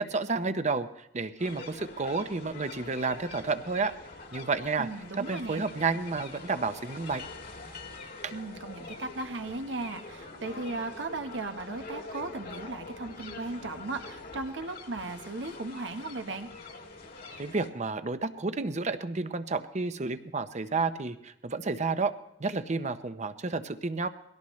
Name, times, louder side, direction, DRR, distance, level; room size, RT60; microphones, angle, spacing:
voice 1, 0.0-3.9 4.3-4.9 5.2-7.2 8.2-8.3 17.4-22.1 22.4-24.1, right 4 dB, 40° right, 11 dB, 0.8 m, -31 dB
sound 1, 1.4-17.7, left 3 dB, 55° left, 1.7 m, -45 dB
voice 2, 4.8-5.6 8.3-16.5, right 2 dB, 80° right, 7 dB, 1.1 m, -37 dB
22.0 x 17.5 x 3.2 m, 0.75 s
head